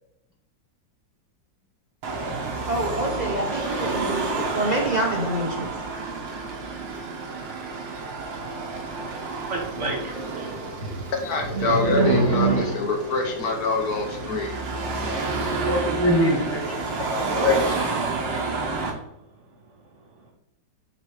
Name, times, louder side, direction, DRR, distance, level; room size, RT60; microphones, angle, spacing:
Car passing by / Traffic noise roadway noise / Engine, 2.0-18.9, right 3 dB, 85° right, 1.9 m, -30 dB
voice 1, 2.7-5.7, right 1 dB, 70° right, -2 dB, 0.4 m, -27 dB
voice 2, 9.5-11.0 11.4-12.8, right 3 dB, 45° right, -1 dB, 1.7 m, -25 dB
voice 3, 11.2-14.6 16.2-16.3, left 3 dB, 60° left, 3 dB, 1.3 m, -25 dB
voice 4, 15.7-18.5, left 1 dB, 10° left, 0 dB, 0.7 m, -25 dB
6.5 x 3.1 x 4.7 m, 0.83 s
omnidirectional pair, 1.9 m